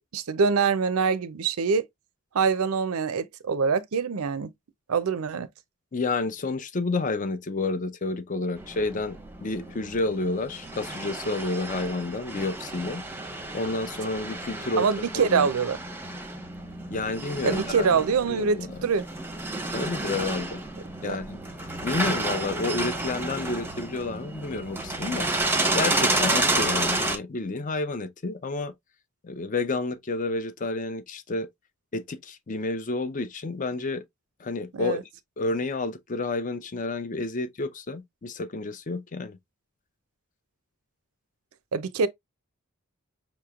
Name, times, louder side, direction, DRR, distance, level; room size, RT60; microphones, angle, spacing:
voice 1, 0.0-1.8 2.3-4.5 4.9-5.5 14.8-15.8 17.4-19.1 21.0-21.2 34.7-35.0 41.7-42.1, right 5 dB, 90° right, 0.5 m, -24 dB
voice 2, 5.9-13.0 13.5-15.5 16.9-17.9 18.3-18.8 19.7-20.6 21.0-21.4 21.8-25.3 25.7-28.7 29.2-31.5 31.9-34.0 34.4-35.1 35.4-39.4, left 3 dB, 35° left, 0.5 m, -30 dB
sound 1, 8.6-27.2, right 2 dB, 10° right, 0.7 m, -31 dB
5.5 x 3.0 x 2.3 m
head